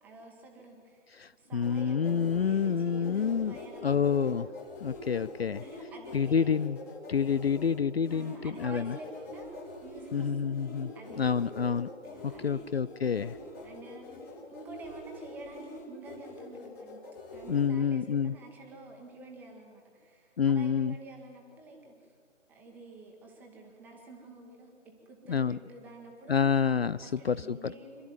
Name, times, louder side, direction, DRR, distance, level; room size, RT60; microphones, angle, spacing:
voice 1, 0.0-1.1 1.4-4.3 5.6-6.7 8.1-11.5 12.0-12.7 13.6-14.1 14.5-17.0 17.3-22.1 22.5-26.4 27.0-28.0, right 2 dB, 5° right, 0 dB, 1.4 m, -49 dB
voice 2, 1.2-3.6 3.8-4.5 4.8-5.6 6.1-6.8 7.1-8.9 10.1-11.9 12.2-13.3 17.5-18.3 20.4-20.9 25.3-25.6 26.3-27.7, left 7 dB, 55° left, 17 dB, 0.5 m, -28 dB
sound 1, 1.6-17.7, left 2 dB, 15° left, 2.0 m, -45 dB
26.0 x 12.5 x 9.4 m, 2.2 s
figure-of-eight pair, 155°, 37 cm